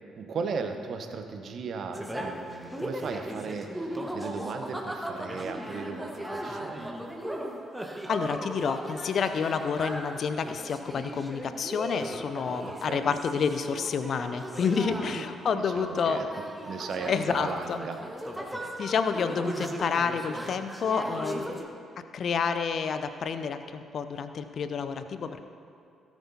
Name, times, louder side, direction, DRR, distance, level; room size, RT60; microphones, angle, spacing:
voice 1, 0.2-6.9 12.8-13.1 14.9-15.3 15.6-16.4 16.7-18.0 18.2-18.7, right 5 dB, 50° right, 6 dB, 0.9 m, -37 dB
sound 1, 1.9-21.7, equal, 5° right, 1.4 m, -37 dB
voice 2, 8.1-16.2 17.1-17.8 18.8-21.6 22.0-25.4, left 6 dB, 50° left, 10 dB, 0.6 m, -29 dB
17.0 x 11.0 x 2.9 m, 2.5 s
figure-of-eight pair, 40°, 0 cm